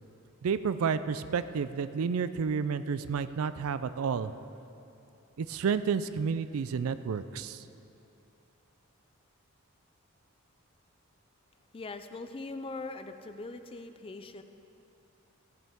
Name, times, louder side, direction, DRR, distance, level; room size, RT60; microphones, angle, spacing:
voice 1, 0.4-4.3 5.4-7.6, right 6 dB, 80° right, 13 dB, 0.4 m, -30 dB
voice 2, 11.7-14.4, left 3 dB, 25° left, 9 dB, 0.4 m, -41 dB
15.0 x 8.9 x 3.6 m, 2.8 s
head